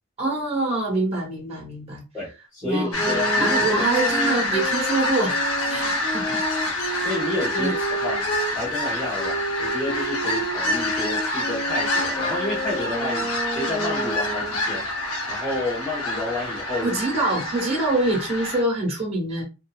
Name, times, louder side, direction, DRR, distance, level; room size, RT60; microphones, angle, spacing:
voice 1, 0.2-2.0 2.6-6.4 6.8-7.0 7.5-7.7 16.8-19.4, right 2 dB, 30° right, 1.0 m, -25 dB
voice 2, 2.1-3.9 6.2-6.8 7.0-14.9 15.3-17.0, left 2 dB, 10° left, 0.9 m, -30 dB
sound 1, 2.9-18.6, left 1 dB, 85° left, 0.8 m, -27 dB
sound 2, 2.9-8.5 9.2-14.6, right 2 dB, 30° left, 0.5 m, -30 dB
2.6 x 2.2 x 2.3 m
head